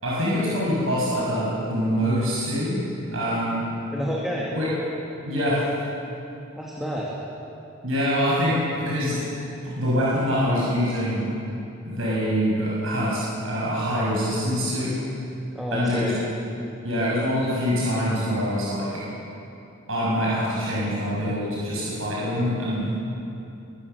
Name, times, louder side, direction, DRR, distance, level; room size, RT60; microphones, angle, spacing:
voice 1, 0.0-3.7 4.5-4.7 5.3-5.7 7.8-9.2 9.6-11.3 11.8-15.0 15.7-16.2 16.8-18.9 19.9-22.9, equal, 70° right, -7 dB, 6.6 m, -24 dB
voice 2, 3.9-4.5 6.6-7.1 15.5-16.2, equal, ahead, -5 dB, 2.4 m, -29 dB
24.0 x 20.0 x 7.1 m, 2.7 s
head